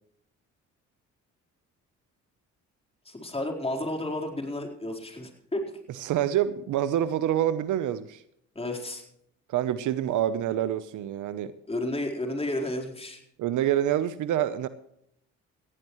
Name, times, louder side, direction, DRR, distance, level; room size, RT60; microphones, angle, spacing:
voice 1, 3.0-5.8 8.5-9.0 11.7-13.2, left 1 dB, 20° left, 1 dB, 4.2 m, -32 dB
voice 2, 6.0-8.2 9.5-11.5 13.4-14.7, right 11 dB, 80° right, 13 dB, 0.9 m, -26 dB
19.0 x 15.5 x 3.1 m, 0.73 s
cardioid pair, 90°, 30 cm